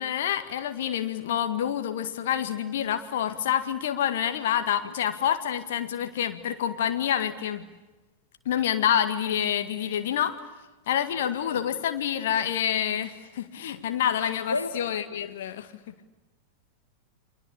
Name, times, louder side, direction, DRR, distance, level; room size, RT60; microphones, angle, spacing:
voice 1, 0.0-7.7 8.5-10.4 10.9-16.1, left 10 dB, 55° left, 8 dB, 1.9 m, -27 dB
voice 2, 11.2-11.6 14.5-14.7, left 3 dB, 80° left, 9 dB, 1.8 m, -32 dB
29.0 x 24.5 x 8.5 m, 1.1 s
figure-of-eight pair, 90°, 0 cm